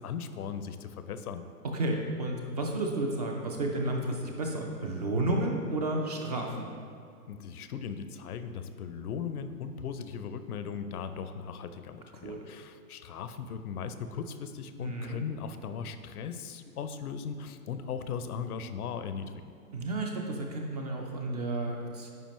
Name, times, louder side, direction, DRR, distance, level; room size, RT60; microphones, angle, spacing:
voice 1, 0.0-1.4 7.3-19.3, left 6 dB, 70° left, 10 dB, 0.6 m, -38 dB
voice 2, 1.6-6.7 12.1-12.4 14.8-15.2 19.7-22.1, right 2 dB, 30° right, 1 dB, 0.4 m, -32 dB
9.3 x 5.0 x 3.0 m, 2.3 s
hypercardioid pair, 130°, 47 cm